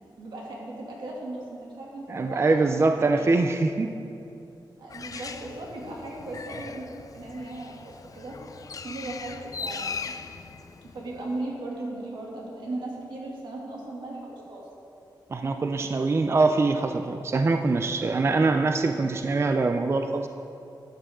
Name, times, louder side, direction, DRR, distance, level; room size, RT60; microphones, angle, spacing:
voice 1, 0.2-3.3 4.8-8.4 8.8-10.1 10.8-14.6, right 2 dB, 90° right, -4 dB, 2.5 m, -37 dB
voice 2, 2.1-3.9 15.3-20.3, right 3 dB, 35° right, 6 dB, 0.4 m, -23 dB
Bird, 4.9-11.4, left 5 dB, 50° left, 0.5 m, -39 dB
12.5 x 9.1 x 3.7 m, 2.7 s
wide cardioid pair, 135°, 8 cm